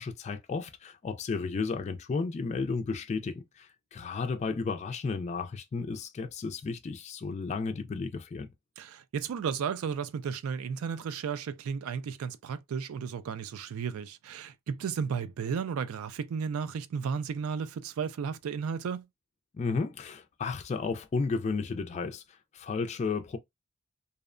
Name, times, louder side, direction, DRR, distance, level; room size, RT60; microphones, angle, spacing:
voice 1, 0.0-8.5 19.5-23.4, left 4 dB, 35° left, 0.3 m, -33 dB
voice 2, 8.8-19.1, right 6 dB, 85° right, 0.4 m, -34 dB
2.6 x 2.1 x 2.4 m
head